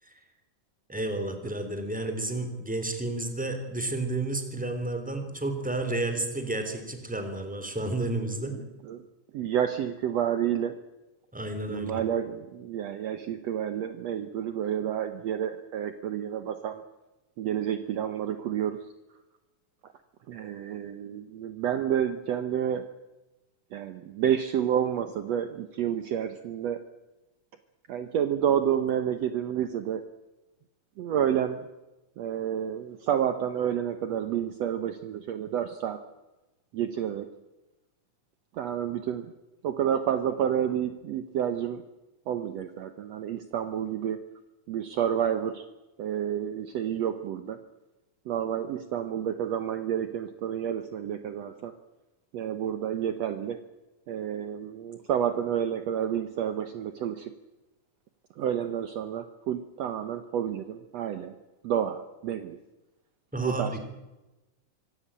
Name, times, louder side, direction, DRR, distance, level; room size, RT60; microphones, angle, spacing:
voice 1, 0.9-8.5 11.3-12.0 63.3-63.8, right 2 dB, 5° right, 7 dB, 3.0 m, -31 dB
voice 2, 8.5-9.0 9.3-10.8 11.7-16.8 17.4-18.8 20.3-22.9 23.7-26.8 27.9-30.0 31.0-31.6 32.2-36.0 36.7-37.3 38.5-39.3 39.6-41.8 42.3-44.2 44.7-45.7 46.0-47.6 48.3-51.7 52.3-53.6 54.1-57.3 58.4-61.4 61.6-62.6 63.4-63.8, right 9 dB, 65° right, 10 dB, 2.0 m, -29 dB
25.5 x 16.0 x 8.9 m, 1.1 s
omnidirectional pair, 3.6 m